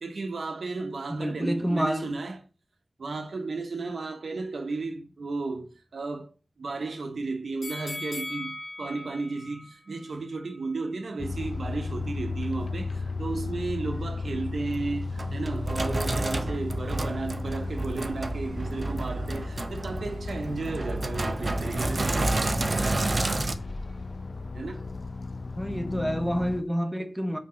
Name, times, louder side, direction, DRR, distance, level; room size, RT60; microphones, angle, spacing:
voice 1, 0.0-2.4 3.0-6.3 6.6-22.5 24.5-24.8, right 3 dB, 80° right, 1.0 m, -34 dB
voice 2, 1.1-2.1 25.6-27.4, equal, 5° right, 1.1 m, -28 dB
sound 1, 7.6-10.7 11.1-11.2, left 2 dB, 90° left, 2.0 m, -40 dB
sound 2, 11.2-26.6, left 3 dB, 60° left, 0.6 m, -35 dB
Sink (filling or washing), 14.7-23.5, right 2 dB, 45° right, 0.7 m, -30 dB
5.8 x 4.4 x 3.8 m
cardioid pair, 45°, 0 cm